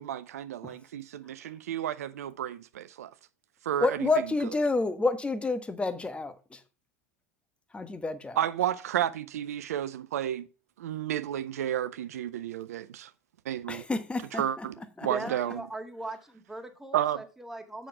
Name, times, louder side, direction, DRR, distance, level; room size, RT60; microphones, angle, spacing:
voice 1, 0.0-3.1 3.7-4.1 8.4-10.5 10.8-13.1 13.5-13.8 14.3-15.7 16.9-17.2, right 11 dB, 75° right, 0.5 m, -32 dB
voice 2, 3.8-6.6 7.7-8.4 13.7-14.7 15.0-15.3, left 3 dB, 15° left, 1.1 m, -29 dB
voice 3, 15.0-17.9, right 2 dB, 5° right, 1.7 m, -39 dB
7.5 x 6.3 x 4.8 m
hypercardioid pair, 80°, 8 cm